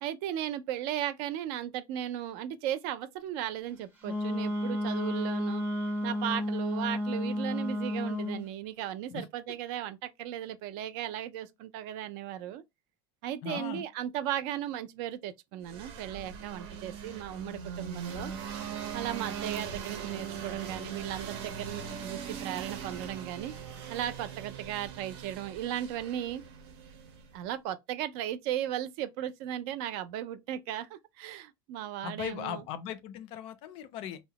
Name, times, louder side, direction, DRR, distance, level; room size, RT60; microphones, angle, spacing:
voice 1, 0.0-5.6 6.0-12.6 13.2-18.3 18.9-23.5 23.9-26.4 27.3-32.6, right 11 dB, 60° right, 0.4 m, -36 dB
Wind instrument woodwind instrument, 4.0-8.4, left 1 dB, 15° right, 0.6 m, -32 dB
voice 2, 13.4-13.8 32.0-34.2, left 9 dB, 45° left, 0.4 m, -38 dB
sound 1, 15.7-27.4, right 7 dB, 85° right, 0.7 m, -40 dB
2.8 x 2.1 x 2.7 m
cardioid pair, 165°, 12 cm